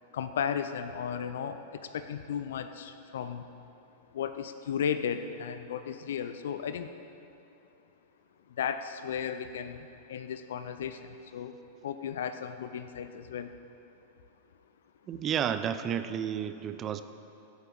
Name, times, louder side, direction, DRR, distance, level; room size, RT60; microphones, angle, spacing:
voice 1, 0.1-3.4 4.1-6.9 8.6-11.6 11.8-13.5, left 8 dB, 65° left, 10 dB, 0.5 m, -35 dB
voice 2, 15.1-17.0, right 8 dB, 30° right, 11 dB, 0.5 m, -31 dB
16.5 x 8.2 x 4.0 m, 2.9 s
figure-of-eight pair, 95°, 0 cm